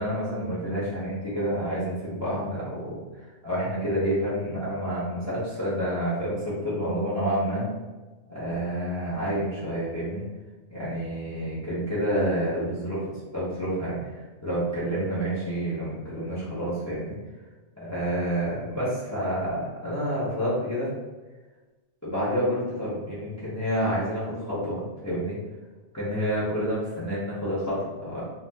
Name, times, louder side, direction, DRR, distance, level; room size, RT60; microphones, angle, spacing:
voice 1, 0.0-7.7 8.3-10.2 10.7-17.2 17.8-20.9 22.0-25.4 25.9-28.2, equal, 15° left, -9 dB, 0.7 m, -29 dB
2.5 x 2.4 x 3.4 m, 1.2 s
omnidirectional pair, 1.2 m